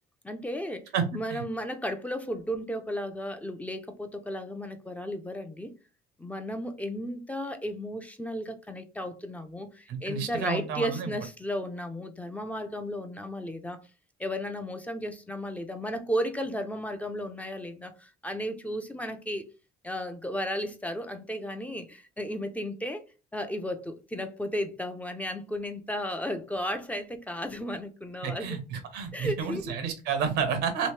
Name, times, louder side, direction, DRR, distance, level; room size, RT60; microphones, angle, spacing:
voice 1, 0.2-5.7 6.2-13.8 14.2-19.5 19.8-23.0 23.3-28.6 29.1-29.7, equal, 10° left, 0.6 m, -34 dB
voice 2, 0.9-1.4 9.9-11.1 28.2-30.9, right 6 dB, 90° right, 0.9 m, -30 dB
3.1 x 2.7 x 3.1 m
cardioid pair, 110°, 17 cm